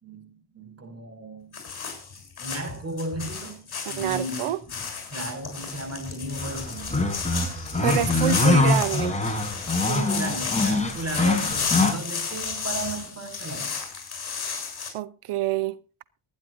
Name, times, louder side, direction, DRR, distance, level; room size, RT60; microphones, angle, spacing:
voice 1, 0.0-1.6 2.4-4.8 5.1-7.1 9.9-13.8, right 2 dB, 30° right, 5.9 m, -35 dB
sound 1, 1.5-14.9, left 5 dB, 50° left, 7.9 m, -32 dB
voice 2, 4.0-4.6 7.8-9.2 14.9-15.8, right 13 dB, 90° right, 0.9 m, -26 dB
sound 2, 6.4-11.9, left 2 dB, 15° left, 4.1 m, -24 dB
24.5 x 10.5 x 2.7 m
cardioid pair, 95°, 50 cm